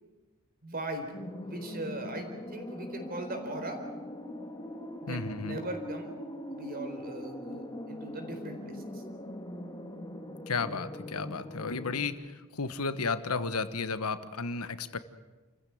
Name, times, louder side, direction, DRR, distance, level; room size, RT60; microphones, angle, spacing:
voice 1, 0.6-1.1 1.4-3.8 5.0-6.1 6.5-9.0, right 1 dB, 40° right, 6 dB, 4.2 m, -39 dB
sound 1, 1.1-12.1, left 1 dB, 20° left, 1.9 m, -41 dB
voice 2, 5.1-5.6 10.5-15.0, left 4 dB, 85° left, 12 dB, 1.3 m, -33 dB
29.0 x 15.0 x 9.3 m, 1.2 s
head